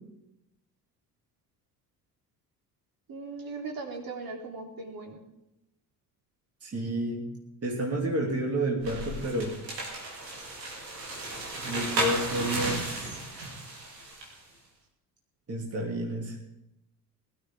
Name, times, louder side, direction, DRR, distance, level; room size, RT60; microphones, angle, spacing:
voice 1, 3.1-5.2, right 3 dB, 45° right, 1 dB, 3.7 m, -38 dB
voice 2, 6.6-7.3 7.6-9.6 11.6-13.2 15.5-16.4, right 1 dB, 30° right, -1 dB, 3.0 m, -30 dB
sound 1, 8.8-14.4, right 2 dB, 80° right, 3.5 m, -34 dB
21.5 x 13.0 x 3.8 m, 0.88 s
figure-of-eight pair, 55°, 49 cm